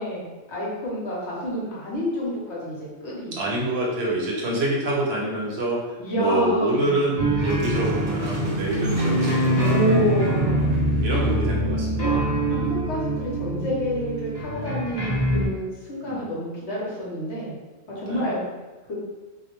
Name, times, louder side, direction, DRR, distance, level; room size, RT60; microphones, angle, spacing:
voice 1, 0.0-3.4 6.0-7.0 9.6-10.8 12.0-17.5 18.0-18.4 18.9-19.0, equal, 70° left, -6 dB, 1.0 m, -28 dB
voice 2, 3.3-10.2 11.0-12.2 12.5-12.7 16.0-16.3 18.1-18.3, right 1 dB, 65° right, -3 dB, 0.8 m, -26 dB
sound 1, 7.2-15.5, right 1 dB, 25° left, 0.6 m, -24 dB
sound 2, 7.3-11.5, right 1 dB, 45° right, 0.4 m, -39 dB
2.4 x 2.0 x 2.9 m, 1.2 s
omnidirectional pair, 1.3 m